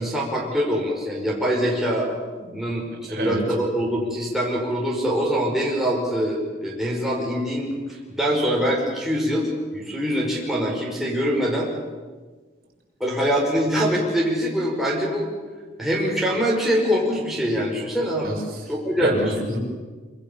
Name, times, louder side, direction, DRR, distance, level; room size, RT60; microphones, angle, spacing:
voice 1, 0.0-2.1 2.5-11.7 13.0-15.3 15.8-18.4 18.7-19.3, equal, ahead, -4 dB, 5.2 m, -24 dB
voice 2, 3.1-3.4 18.2-18.7 19.0-19.6, right 1 dB, 50° right, -1 dB, 6.8 m, -26 dB
26.0 x 25.5 x 7.1 m, 1.4 s
head